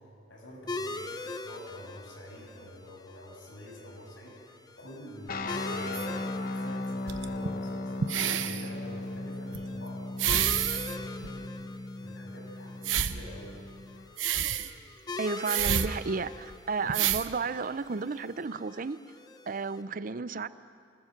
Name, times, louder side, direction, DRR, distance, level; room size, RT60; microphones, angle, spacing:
voice 1, 0.0-13.6, equal, 90° left, 7.0 m, -47 dB
sound 1, 0.7-19.8, left 3 dB, 20° left, 0.7 m, -43 dB
sound 2, 5.3-14.2, left 2 dB, 50° left, 1.0 m, -37 dB
sound 3, 5.9-6.1 7.1-7.5 8.0-8.7 9.5-9.6 10.2-10.9 11.2-11.3 12.8-13.2 14.2-14.7 15.4-15.9 16.5-16.6 16.9-17.3 18.2-18.3, right 9 dB, 90° right, 0.9 m, -28 dB
voice 2, 15.2-19.0 19.5-20.5, right 4 dB, 45° right, 0.5 m, -32 dB
26.0 x 20.5 x 6.5 m
head